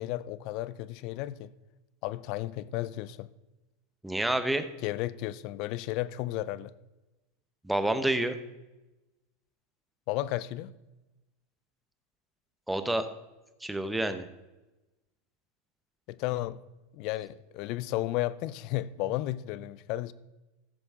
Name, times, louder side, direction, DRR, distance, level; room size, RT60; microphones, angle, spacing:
voice 1, 0.0-1.5 2.0-3.3 4.8-6.7 10.1-10.7 16.1-16.6 16.9-20.1, left 15 dB, 55° left, 0.5 m, -33 dB
voice 2, 4.0-4.6 7.6-8.4 12.7-13.1 13.6-14.3, right 1 dB, 5° right, 0.9 m, -28 dB
15.5 x 6.9 x 3.6 m
supercardioid pair, 120°, 0 cm